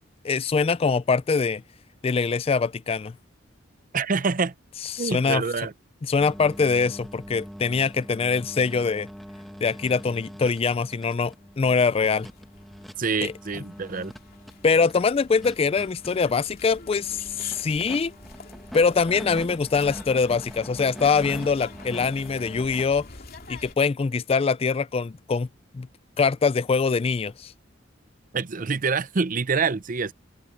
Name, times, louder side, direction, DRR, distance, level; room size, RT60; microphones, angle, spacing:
voice 1, 0.2-1.6 2.0-3.1 4.9-5.4 6.1-9.1 9.6-12.3 13.2-13.3 14.6-18.1 18.7-23.1 23.5-25.5 25.7-25.9 26.2-27.5, left 5 dB, 30° left, 0.3 m, -23 dB
voice 2, 3.9-4.5 5.0-5.7 13.0-14.1 28.3-30.1, right 4 dB, 45° right, 0.6 m, -26 dB
sound 1, 6.2-22.8, equal, ahead, 1.3 m, -43 dB
sound 2, 11.4-23.7, left 3 dB, 50° left, 2.9 m, -46 dB
head